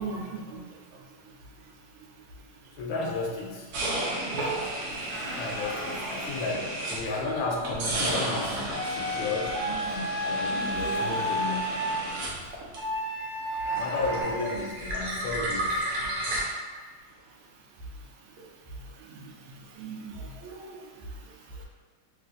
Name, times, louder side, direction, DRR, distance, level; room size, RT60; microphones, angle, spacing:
voice 1, 0.0-2.8 4.3-5.4 5.8-6.4 9.7-10.3 11.2-11.3 12.8-13.8 16.2-16.3 17.1-21.7, right 3 dB, 90° right, 0 dB, 1.4 m, -42 dB
voice 2, 2.8-3.7 5.4-9.6 10.2-11.8 13.7-15.9, left 3 dB, 75° left, -1 dB, 1.2 m, -33 dB
sound 1, 3.7-7.3 7.6-13.2 13.5-16.4, right 1 dB, 65° right, 0.9 m, -33 dB
sound 2, 5.1-6.0 8.0-8.8 10.4-11.2 13.6-14.4, left 1 dB, 50° left, 1.0 m, -39 dB
sound 3, 8.7-12.0 12.7-14.2, equal, 10° left, 0.7 m, -31 dB
3.3 x 3.0 x 2.5 m, 1.4 s
omnidirectional pair, 2.2 m